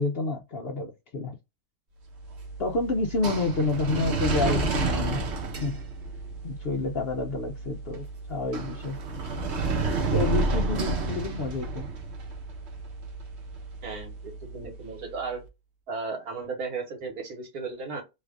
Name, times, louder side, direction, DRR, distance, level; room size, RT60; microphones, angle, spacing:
voice 1, 0.0-1.4 2.6-5.4 5.6-5.8 6.4-9.0 10.1-11.8, left 3 dB, 60° left, 0.6 m, -29 dB
sound 1, 2.1-15.2, right 3 dB, 50° right, 1.1 m, -31 dB
voice 2, 13.8-15.4 15.9-18.0, right 4 dB, 75° right, 1.8 m, -35 dB
3.3 x 2.4 x 3.4 m
omnidirectional pair, 1.6 m